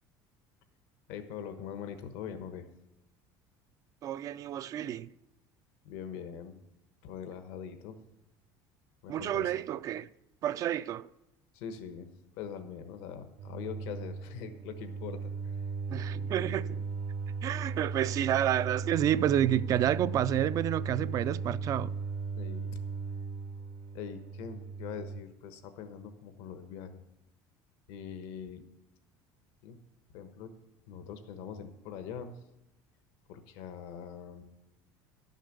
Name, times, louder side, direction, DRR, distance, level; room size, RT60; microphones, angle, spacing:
voice 1, 1.1-2.7 5.8-6.6 7.0-8.0 9.0-9.5 11.5-12.1 12.3-15.6 22.3-22.8 23.9-27.0 27.9-28.6 29.6-29.8 30.1-30.5 30.9-32.4 33.3-34.4, left 7 dB, 80° left, 1.1 m, -43 dB
voice 2, 4.0-5.1 9.1-10.1 10.4-11.1 15.9-16.8 17.4-21.9, right 11 dB, 40° right, 0.3 m, -29 dB
sound 1, 13.4-25.2, right 5 dB, 65° right, 0.9 m, -37 dB
11.5 x 6.5 x 6.6 m
cardioid pair, 140°, 9 cm